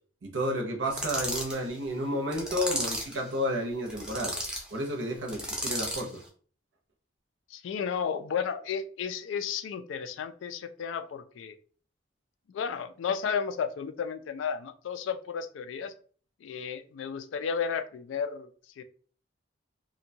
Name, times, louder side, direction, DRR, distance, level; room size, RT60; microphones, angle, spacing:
voice 1, 0.2-4.3 4.7-6.2, equal, 80° right, 0.7 m, -31 dB
sound 1, 0.9-1.6 2.3-3.2 3.9-4.6 5.3-6.1, equal, 5° right, 0.5 m, -33 dB
voice 2, 7.5-11.6 12.5-15.9 16.4-18.5 18.8-18.9, left 6 dB, 85° left, 0.3 m, -33 dB
2.7 x 2.2 x 2.6 m
head